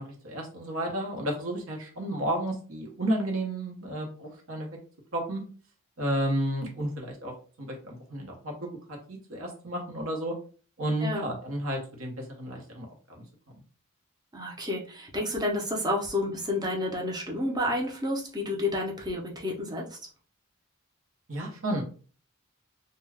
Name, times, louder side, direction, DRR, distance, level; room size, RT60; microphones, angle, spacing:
voice 1, 0.0-4.7 5.1-5.4 6.0-7.3 7.6-8.6 8.9-10.3 10.8-12.9 13.2-13.3 21.3-21.8, right 1 dB, 70° right, 1 dB, 0.9 m, -32 dB
voice 2, 14.3-20.0, left 1 dB, 20° right, -1 dB, 0.6 m, -30 dB
2.3 x 2.2 x 3.3 m, 0.40 s
head